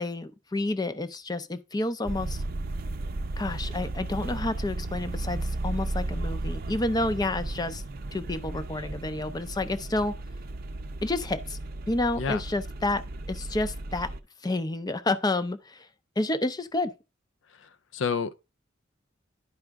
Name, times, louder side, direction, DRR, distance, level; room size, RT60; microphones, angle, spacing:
voice 1, 0.0-2.4 3.4-7.8 8.1-10.1 11.0-11.6 11.9-13.0 13.3-14.1 14.4-15.9 16.2-16.9, left 2 dB, 20° left, 0.5 m, -29 dB
sound 1, 2.1-14.2, right 2 dB, 50° right, 0.6 m, -34 dB
voice 2, 17.6-18.4, left 5 dB, 70° left, 0.5 m, -30 dB
11.0 x 4.9 x 3.5 m
head